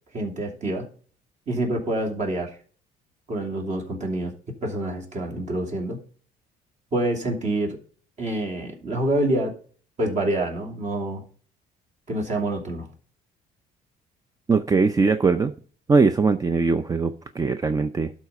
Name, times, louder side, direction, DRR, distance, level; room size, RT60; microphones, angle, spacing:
voice 1, 0.1-0.9 1.5-2.5 3.3-4.3 4.6-6.0 6.9-7.8 8.2-9.5 10.0-11.2 12.1-12.9, right 1 dB, 45° right, 1 dB, 2.7 m, -26 dB
voice 2, 14.5-15.5 15.9-18.1, right 4 dB, 20° right, 10 dB, 0.6 m, -21 dB
12.0 x 4.1 x 5.5 m, 0.42 s
cardioid pair, 110°, 17 cm